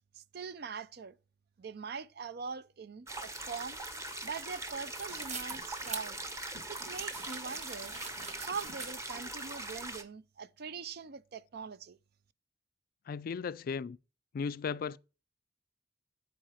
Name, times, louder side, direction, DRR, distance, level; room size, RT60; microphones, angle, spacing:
voice 1, 0.1-1.1 1.6-3.8 4.2-6.2 6.7-8.0 8.3-12.0, right 5 dB, 60° right, 0.5 m, -42 dB
sound 1, 3.1-10.0, right 2 dB, 15° right, 1.0 m, -41 dB
sound 2, 4.9-9.3, right 5 dB, 40° right, 1.2 m, -45 dB
voice 2, 13.1-14.0 14.3-15.0, left 5 dB, 55° left, 0.3 m, -36 dB
10.0 x 4.8 x 4.9 m
head